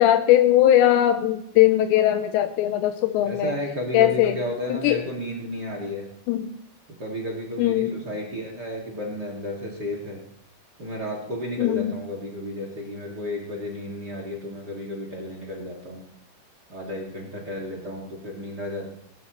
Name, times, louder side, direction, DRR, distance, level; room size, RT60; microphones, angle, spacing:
voice 1, 0.0-3.5 3.9-4.4 4.7-5.0 6.3-6.5 7.6-7.9 11.6-12.0, left 12 dB, 85° left, 8 dB, 2.5 m, -19 dB
voice 2, 3.2-6.0 7.0-10.2 10.8-16.0 16.7-18.9, left 1 dB, 55° right, -1 dB, 1.1 m, -32 dB
22.5 x 13.0 x 3.1 m, 0.73 s
omnidirectional pair, 5.8 m